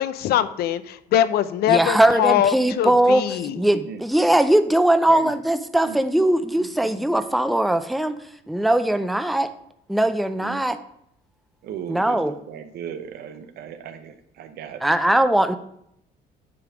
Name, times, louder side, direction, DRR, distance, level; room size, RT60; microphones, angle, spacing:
voice 1, 0.0-3.5, left 11 dB, 70° left, 14 dB, 0.5 m, -22 dB
voice 2, 1.7-8.2 8.5-9.5 9.9-10.8 11.9-12.3 14.8-15.6, right 1 dB, ahead, 10 dB, 0.4 m, -20 dB
voice 3, 11.6-12.2 12.5-14.8, right 8 dB, 70° right, 9 dB, 0.8 m, -36 dB
9.5 x 3.4 x 4.9 m, 0.74 s
cardioid pair, 110°, 17 cm